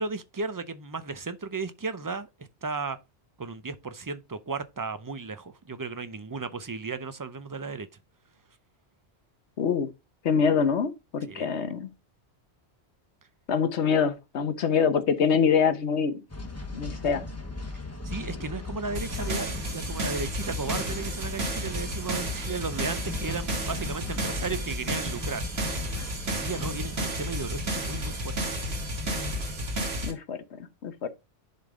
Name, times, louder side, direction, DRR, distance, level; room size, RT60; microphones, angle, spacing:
voice 1, 0.0-2.3 2.6-3.0 3.4-7.9 11.3-11.7 18.0-25.4 26.3-28.5, right 4 dB, 35° right, 0.3 m, -35 dB
voice 2, 9.6-9.9 10.2-11.9 13.5-16.2 16.7-17.3 30.0-31.1, left 6 dB, 80° left, 1.2 m, -25 dB
sound 1, 16.3-30.0, left 2 dB, 15° left, 0.9 m, -38 dB
sound 2, 18.9-30.1, right 1 dB, 70° right, 1.7 m, -32 dB
10.5 x 3.5 x 3.7 m
omnidirectional pair, 1.1 m